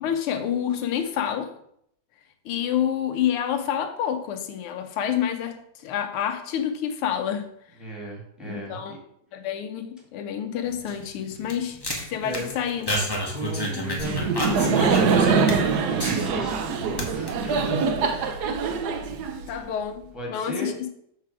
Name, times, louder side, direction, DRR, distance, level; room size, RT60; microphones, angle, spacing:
voice 1, 0.0-1.5 2.4-5.6 5.8-7.4 8.4-9.0 9.3-11.8 12.1-13.0 19.5-20.9, left 9 dB, 80° left, 7 dB, 1.6 m, -28 dB
voice 2, 7.8-9.0 12.2-12.5 13.2-17.6 20.1-20.8, right 1 dB, ahead, -2 dB, 1.7 m, -36 dB
sound 1, 10.6-16.6 16.9-17.3, left 1 dB, 20° left, 0.7 m, -30 dB
Laughter, 14.0-19.8, right 5 dB, 70° right, 1.0 m, -24 dB
6.7 x 4.8 x 4.7 m, 0.71 s
omnidirectional pair, 2.4 m